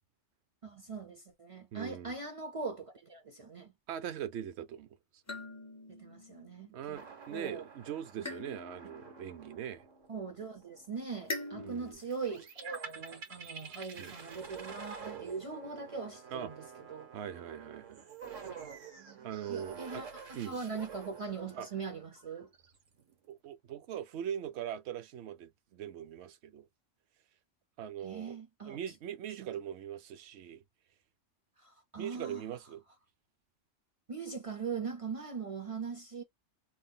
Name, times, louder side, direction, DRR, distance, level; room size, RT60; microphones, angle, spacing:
voice 1, 0.6-3.7 5.9-7.0 7.3-7.7 10.1-17.1 19.0-22.5 28.0-28.8 29.4-29.5 31.6-32.5 34.1-36.2, right 5 dB, 50° right, 0.4 m, -41 dB
voice 2, 1.7-2.1 3.9-4.9 6.7-9.9 11.6-12.0 14.0-14.1 16.3-16.5 17.1-18.1 19.2-20.0 20.3-20.6 21.6-21.7 23.3-26.7 27.8-28.4 28.7-30.6 32.0-32.8, right 9 dB, 65° right, 0.8 m, -41 dB
sound 1, 5.3-6.9 8.2-10.3 11.3-11.9, left 2 dB, 20° left, 0.4 m, -44 dB
sound 2, 6.9-23.3, right 6 dB, 85° right, 1.3 m, -49 dB
2.8 x 2.2 x 3.5 m
omnidirectional pair, 1.3 m